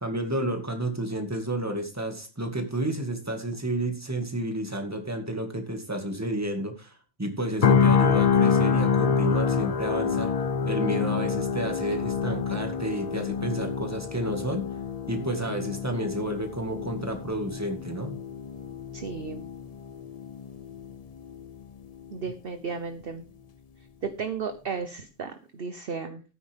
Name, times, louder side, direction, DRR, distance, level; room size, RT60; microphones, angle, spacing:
voice 1, 0.0-10.3 10.7-14.6 15.1-18.2, right 1 dB, 10° right, 4 dB, 2.0 m, -31 dB
sound 1, 7.6-21.6 22.0-22.2, left 6 dB, 50° left, 0.4 m, -27 dB
voice 2, 18.9-19.4 22.1-23.2 24.0-26.2, right 5 dB, 45° right, 9 dB, 1.0 m, -34 dB
13.5 x 9.3 x 3.6 m, 0.33 s
omnidirectional pair, 1.4 m